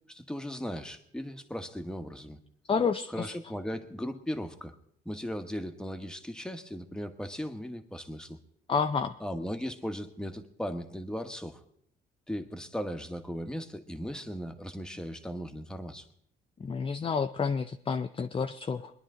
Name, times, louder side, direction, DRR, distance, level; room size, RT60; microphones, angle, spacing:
voice 1, 0.1-2.4 3.1-4.7 5.0-8.4 9.2-11.6 12.3-16.0, equal, 5° left, 6 dB, 1.3 m, -37 dB
voice 2, 2.7-3.3 8.7-9.1 16.6-18.9, left 5 dB, 25° left, 6 dB, 0.5 m, -29 dB
22.0 x 10.5 x 3.8 m, 0.66 s
cardioid pair, 90°, 20 cm